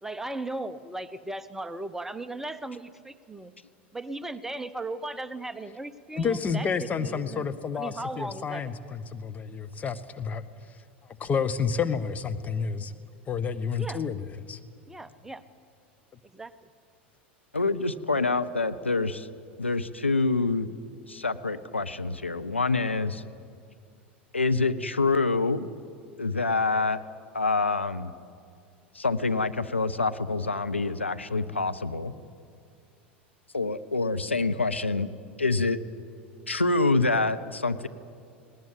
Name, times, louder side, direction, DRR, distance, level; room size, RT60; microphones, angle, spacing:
voice 1, 0.0-3.5 3.9-6.7 7.0-7.4 7.7-9.0 13.8-14.0 14.9-15.4 16.3-16.5, right 2 dB, 5° right, 12 dB, 0.8 m, -37 dB
voice 2, 6.2-10.4 11.2-12.9 13.3-14.6, left 6 dB, 25° left, 10 dB, 1.1 m, -30 dB
voice 3, 17.6-19.1 19.6-20.7 21.1-23.2 24.3-25.7 26.2-27.0 27.3-28.1 28.9-32.1 33.5-35.1 35.4-35.8 36.5-37.9, left 3 dB, 85° left, 10 dB, 0.7 m, -26 dB
19.0 x 18.5 x 8.8 m, 2.3 s
figure-of-eight pair, 80°, 6 cm